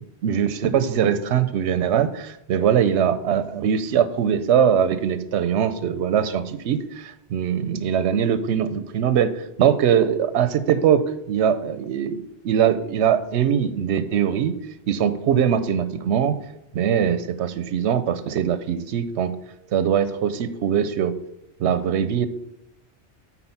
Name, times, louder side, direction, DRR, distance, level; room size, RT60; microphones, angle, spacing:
voice 1, 0.2-11.0 11.3-14.5 14.9-16.3 16.7-19.3 19.7-21.1 21.6-22.3, right 8 dB, 85° right, 12 dB, 0.9 m, -21 dB
8.6 x 4.2 x 5.6 m, 0.82 s
omnidirectional pair, 1.1 m